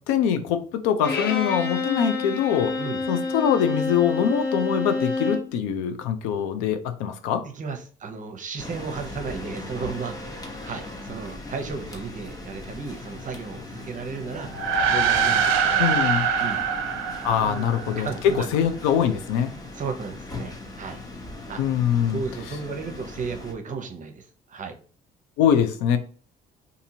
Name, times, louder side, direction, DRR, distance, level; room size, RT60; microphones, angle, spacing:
voice 1, 0.0-2.7 3.1-7.4 15.8-16.2 17.2-19.5 21.6-22.2 25.4-26.0, left 8 dB, 85° left, 0.4 m, -23 dB
Bowed string instrument, 1.0-5.5, left 4 dB, 50° left, 0.8 m, -27 dB
voice 2, 7.4-14.5 14.9-15.9 16.4-16.6 17.4-17.6 18.0-18.5 19.7-21.0 21.5-21.6 22.1-24.8, right 5 dB, 40° right, 0.7 m, -34 dB
sound 1, 8.6-23.5, left 2 dB, 20° left, 0.8 m, -39 dB
sound 2, 14.5-18.2, right 6 dB, 75° right, 0.4 m, -23 dB
2.6 x 2.6 x 2.7 m
hypercardioid pair, 60°, 20 cm